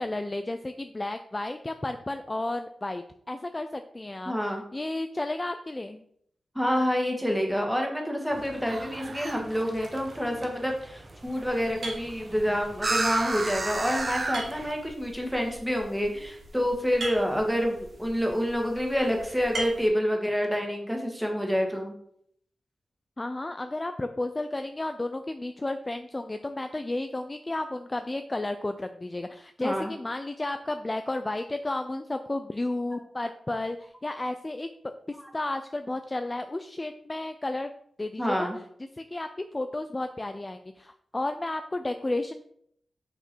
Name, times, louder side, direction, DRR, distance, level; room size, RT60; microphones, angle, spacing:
voice 1, 0.0-4.3 4.7-6.0 23.2-34.7 35.1-37.7 38.0-38.5 38.9-42.4, left 2 dB, 20° left, 8 dB, 0.4 m, -32 dB
voice 2, 4.2-4.6 6.5-21.9 29.6-29.9 32.9-33.0 38.2-38.6, equal, ahead, 1 dB, 1.6 m, -28 dB
sound 1, 8.3-14.7, right 2 dB, 40° right, 1.0 m, -34 dB
sound 2, 11.2-19.9, right 2 dB, 75° right, 2.4 m, -42 dB
6.1 x 5.5 x 4.5 m, 0.69 s
wide cardioid pair, 110°, 0 cm